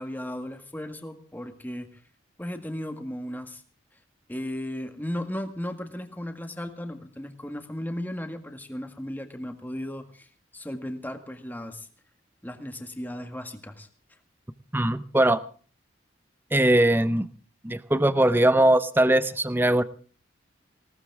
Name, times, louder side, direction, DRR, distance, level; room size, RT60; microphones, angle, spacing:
voice 1, 0.0-2.0 2.4-3.6 3.9-4.0 4.3-11.9 12.4-13.9, left 1 dB, 10° left, 6 dB, 1.8 m, -36 dB
voice 2, 14.7-15.4 16.5-17.3 17.6-19.8, right 1 dB, 10° right, 14 dB, 0.7 m, -21 dB
19.5 x 18.0 x 3.6 m, 0.40 s
head